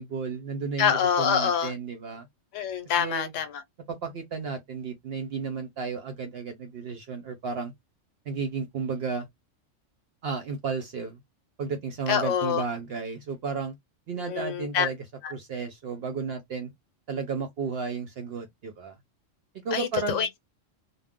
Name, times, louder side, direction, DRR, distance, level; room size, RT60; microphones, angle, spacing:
voice 1, 0.0-2.3 3.0-3.3 3.9-7.7 8.3-9.3 10.2-11.2 11.6-13.7 14.1-15.0 15.3-16.7 17.1-19.0 19.6-20.3, right 5 dB, 60° right, 0.7 m, -33 dB
voice 2, 0.8-1.7 2.5-3.6 12.1-12.6 14.3-14.9 15.2-15.3 19.7-20.4, left 8 dB, 75° left, 1.0 m, -26 dB
2.4 x 2.0 x 3.4 m
omnidirectional pair, 1.3 m